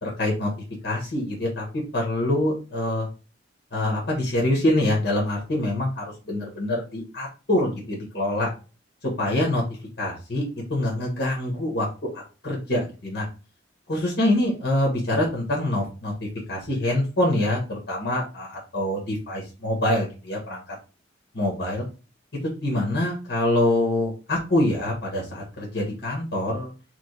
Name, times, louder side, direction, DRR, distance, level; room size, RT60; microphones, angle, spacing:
voice 1, 0.0-0.5 0.8-1.6 1.9-3.1 3.7-8.5 9.0-9.6 10.0-10.4 10.7-13.2 13.9-16.1 16.5-20.6 21.3-21.9 22.6-26.7, left 1 dB, 60° left, -2 dB, 1.3 m, -25 dB
3.5 x 3.3 x 3.8 m, 0.33 s
head